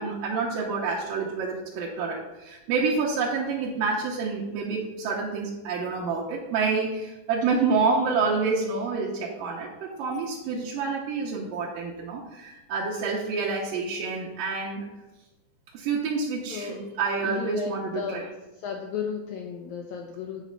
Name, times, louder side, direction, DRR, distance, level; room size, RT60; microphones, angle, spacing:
voice 1, 0.0-14.9 15.7-18.2, right 4 dB, 75° right, -4 dB, 2.4 m, -28 dB
voice 2, 16.5-16.9 17.2-18.2 18.5-20.4, left 6 dB, 80° left, 1 dB, 1.7 m, -34 dB
9.4 x 4.1 x 5.5 m, 1.0 s
omnidirectional pair, 4.2 m